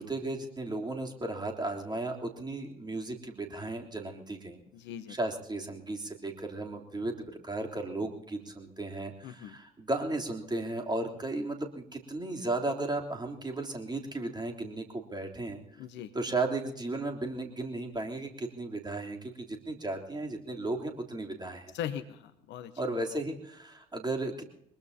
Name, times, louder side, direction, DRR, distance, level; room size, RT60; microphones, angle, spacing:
voice 1, 0.0-4.6 5.1-15.6 16.1-21.7 22.8-24.4, right 2 dB, 20° right, 1 dB, 3.4 m, -35 dB
voice 2, 4.7-5.2 9.2-9.6 15.8-16.1 21.7-22.7, left 9 dB, 60° left, 12 dB, 1.0 m, -39 dB
23.0 x 21.0 x 2.8 m, 0.74 s
figure-of-eight pair, 45°, 21 cm